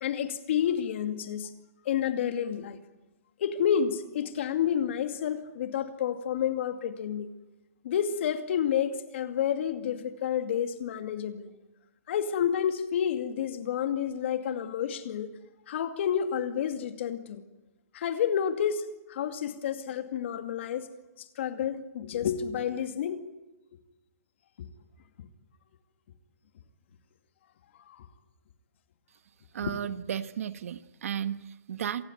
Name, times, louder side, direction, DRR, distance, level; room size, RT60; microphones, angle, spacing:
voice 1, 0.0-1.5 1.9-2.8 3.4-7.3 7.8-11.5 12.1-15.3 15.7-17.4 17.9-20.9 21.4-23.2 24.6-24.7 27.9-28.1 29.6-29.7, left 8 dB, 50° left, 2.4 m, -30 dB
voice 2, 29.5-32.0, right 9 dB, 60° right, 1.4 m, -34 dB
27.0 x 18.5 x 9.4 m
hypercardioid pair, 170°, 9 cm